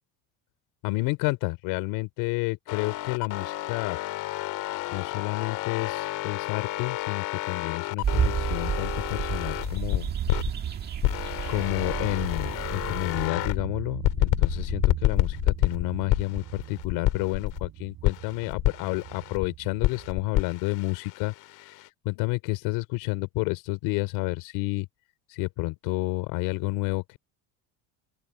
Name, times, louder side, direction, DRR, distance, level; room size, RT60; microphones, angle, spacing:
voice 1, 0.8-4.0 4.9-10.1 11.5-24.9 25.3-27.2, left 23 dB, 80° left, 3.6 m, -30 dB
sound 1, 2.7-10.5 11.0-13.6 14.0-17.7 18.0-19.5 19.8-21.9, left 16 dB, 55° left, 2.1 m, -29 dB
sound 2, 8.0-13.3, right 7 dB, 25° right, 1.7 m, -31 dB
sound 3, 10.0-20.3, right 14 dB, 45° right, 5.4 m, -40 dB
open air
cardioid pair, 175°, 38 cm